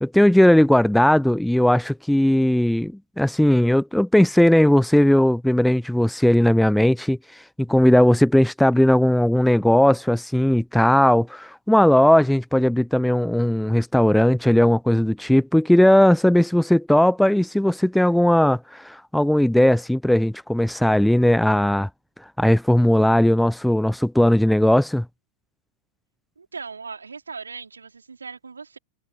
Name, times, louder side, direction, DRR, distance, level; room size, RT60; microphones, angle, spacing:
voice 1, 0.0-21.9 22.4-25.1, left 1 dB, ahead, 0.6 m, -18 dB
voice 2, 26.4-28.8, right 5 dB, 75° right, 4.3 m, -38 dB
figure-of-eight pair, 90°, 0 cm